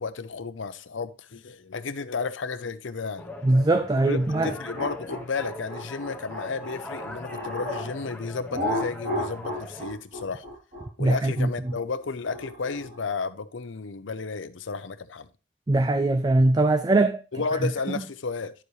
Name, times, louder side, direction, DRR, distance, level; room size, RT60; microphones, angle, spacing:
voice 1, 0.0-3.3 4.1-4.2 4.4-10.4 11.0-15.3 17.3-18.5, left 4 dB, 80° left, 0.7 m, -32 dB
sound 1, 3.2-9.9, left 2 dB, 10° left, 1.0 m, -41 dB
voice 2, 3.4-4.5 11.0-11.5 15.7-17.2 17.6-17.7, right 2 dB, 20° right, 0.3 m, -21 dB
sound 2, 4.3-7.9 8.5-13.0, left 1 dB, 45° right, 2.9 m, -33 dB
10.0 x 7.0 x 3.2 m
head